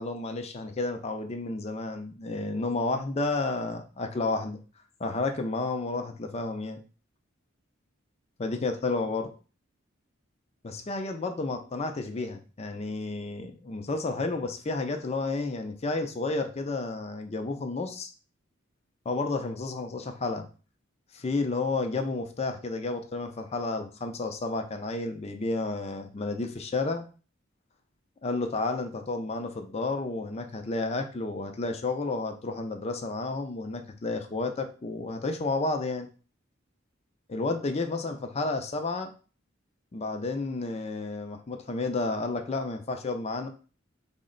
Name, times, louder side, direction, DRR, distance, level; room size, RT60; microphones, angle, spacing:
voice 1, 0.0-4.6 5.0-6.8 8.4-9.3 10.6-18.1 19.1-20.5 21.1-27.1 28.2-36.1 37.3-39.1 39.9-43.5, left 3 dB, 30° left, 5 dB, 0.4 m, -31 dB
3.7 x 2.1 x 3.7 m, 0.36 s
head